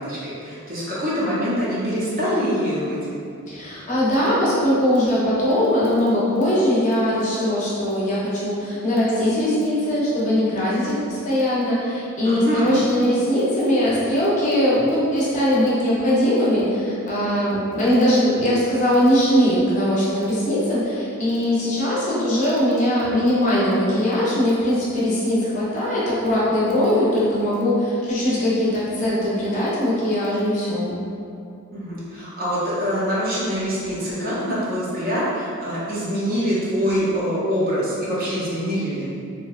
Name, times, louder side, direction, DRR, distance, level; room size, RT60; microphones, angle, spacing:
voice 1, 0.0-3.0 12.2-12.7 31.7-39.1, equal, 40° right, -8 dB, 0.7 m, -24 dB
voice 2, 3.5-31.0, equal, 35° left, -8 dB, 0.6 m, -20 dB
2.7 x 2.1 x 2.3 m, 2.5 s
head